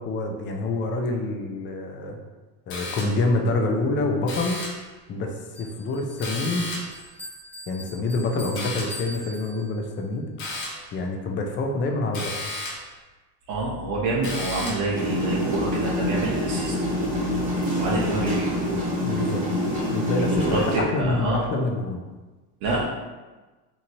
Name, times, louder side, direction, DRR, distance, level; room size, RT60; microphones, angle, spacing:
voice 1, 0.1-2.2 2.7-4.6 5.1-6.7 7.7-10.3 10.9-12.3 19.0-19.4 19.9-22.0, left 2 dB, 25° left, 3 dB, 0.3 m, -26 dB
sound 1, 2.7-3.4 4.3-4.9 6.2-7.0 8.6-9.1 10.4-10.9 12.1-12.9 14.2-15.0, left 2 dB, 60° left, 1.0 m, -34 dB
Bell, 5.5-10.1, left 1 dB, 5° left, 1.2 m, -42 dB
voice 2, 13.5-16.7 17.7-18.8 20.2-21.5 22.6-22.8, right 2 dB, 70° right, -4 dB, 0.8 m, -27 dB
sound 2, 14.9-20.8, equal, 15° right, 1.1 m, -26 dB
2.9 x 2.7 x 2.6 m, 1.2 s
supercardioid pair, 95°, 49 cm